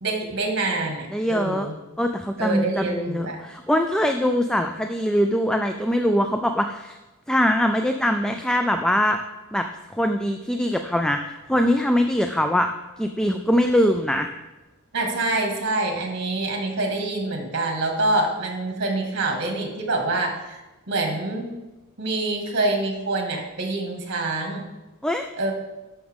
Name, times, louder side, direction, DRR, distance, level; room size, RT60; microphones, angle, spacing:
voice 1, 0.0-1.7 2.4-3.4 14.9-20.6 20.9-21.5 22.0-24.7 25.4-25.5, right 2 dB, 55° right, 2 dB, 1.9 m, -26 dB
voice 2, 1.1-1.7 2.0-7.0 7.3-9.2 9.5-9.7 9.9-12.7 13.0-14.3 25.0-25.3, equal, 5° left, 6 dB, 0.3 m, -22 dB
12.5 x 6.0 x 3.6 m, 1.1 s
head